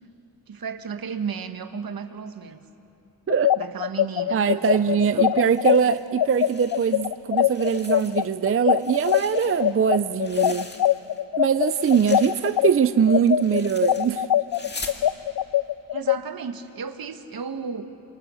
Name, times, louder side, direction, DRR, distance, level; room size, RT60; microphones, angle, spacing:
voice 1, 0.5-2.6 3.6-5.4 15.9-17.8, right 6 dB, 70° right, 8 dB, 1.3 m, -34 dB
sound 1, 3.3-12.7 13.1-16.2, left 12 dB, 75° left, 0.5 m, -22 dB
voice 2, 4.3-10.7 11.4-14.3, right 7 dB, 35° right, 12 dB, 0.5 m, -22 dB
sound 2, 5.4-7.1 7.4-8.4 8.7-11.2 11.5-15.0, left 3 dB, 30° left, 2.0 m, -42 dB
28.0 x 26.5 x 6.3 m, 2.9 s
wide cardioid pair, 130°, 37 cm